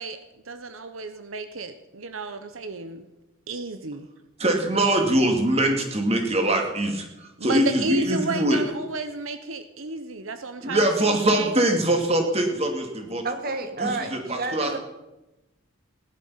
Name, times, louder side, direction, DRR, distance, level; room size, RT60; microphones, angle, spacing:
voice 1, 0.0-3.1 3.5-4.1 7.4-11.6, right 3 dB, 80° right, 9 dB, 1.0 m, -32 dB
voice 2, 4.4-8.6 10.6-13.2 13.8-14.8, right 1 dB, 30° right, 3 dB, 2.3 m, -23 dB
voice 3, 13.2-14.8, right 3 dB, 45° right, 6 dB, 1.7 m, -30 dB
18.0 x 11.0 x 5.7 m, 0.99 s
head